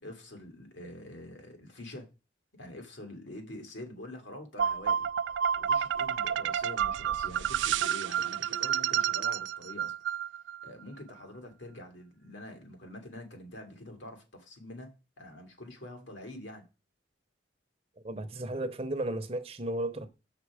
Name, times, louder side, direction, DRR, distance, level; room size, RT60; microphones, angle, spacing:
voice 1, 0.0-2.1 2.6-5.1 5.6-9.9 10.6-14.9 15.2-16.6, left 1 dB, 75° left, 2.3 m, -46 dB
sound 1, 4.6-10.7, right 9 dB, 75° right, 0.3 m, -30 dB
voice 2, 18.0-20.1, right 1 dB, 30° right, 0.8 m, -34 dB
6.9 x 5.9 x 4.8 m
head